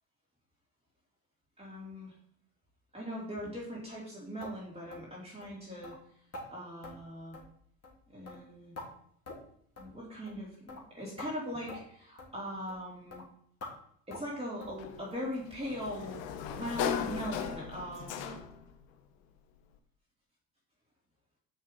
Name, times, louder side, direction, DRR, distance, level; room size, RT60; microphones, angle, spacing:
voice 1, 1.6-2.1 2.9-5.9 6.5-7.3 8.1-8.7 9.8-13.2 14.1-16.2 16.5-18.4, equal, 10° right, -5 dB, 3.1 m, -40 dB
sound 1, 4.4-4.6 4.9-5.1 5.4-5.5 5.8-6.0 6.3-6.5 6.8-7.0 7.3-7.6 7.8-8.0 8.3-8.9 9.3-9.5 9.8-9.9 10.3-10.4 10.7-10.8 11.2-11.3 11.7-11.8 12.2-12.3 12.7-12.8 13.1-13.2 13.6-13.7 14.1-14.3 14.6-14.8 15.1-15.3 15.6-15.7 16.1-16.2 16.6-16.7, left 2 dB, 30° left, 3.1 m, -46 dB
Sliding door, 14.8-18.7, left 8 dB, 65° left, 1.2 m, -37 dB
6.4 x 6.0 x 5.4 m, 0.64 s
hypercardioid pair, 80°, 48 cm